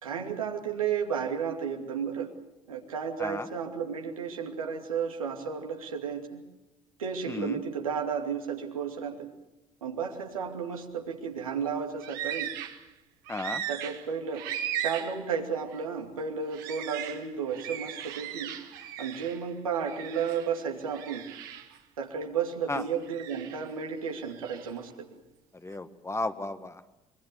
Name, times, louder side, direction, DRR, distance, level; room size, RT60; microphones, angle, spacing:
voice 1, 0.0-2.3 2.7-6.4 7.0-9.3 9.8-12.5 13.7-14.4 14.8-18.5 19.0-21.3 22.0-24.9, right 6 dB, 80° right, 2 dB, 2.5 m, -33 dB
voice 2, 7.3-7.6 13.3-13.6 22.7-22.8 25.6-26.9, left 2 dB, 15° left, 10 dB, 1.7 m, -34 dB
sound 1, 12.0-12.9 13.3-15.3 15.7-15.8 16.5-19.4 19.8-20.5 20.9-21.8 22.8-23.7 24.2-24.7, right 10 dB, 60° right, 1.9 m, -38 dB
24.5 x 23.5 x 7.0 m, 0.94 s
figure-of-eight pair, 55°, 18 cm